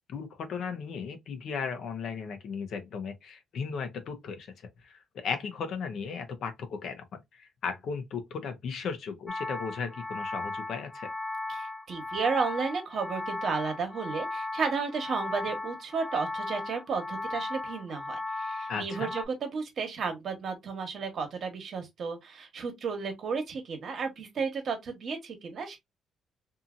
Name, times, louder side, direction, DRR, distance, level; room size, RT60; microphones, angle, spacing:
voice 1, 0.1-4.5 4.8-11.1 18.7-19.1, left 5 dB, 70° left, 0.7 m, -36 dB
sound 1, 9.3-19.3, left 2 dB, 10° left, 0.5 m, -36 dB
voice 2, 11.5-25.8, right 5 dB, 60° right, 1.1 m, -33 dB
2.7 x 2.7 x 2.5 m
cardioid pair, 90°, 0 cm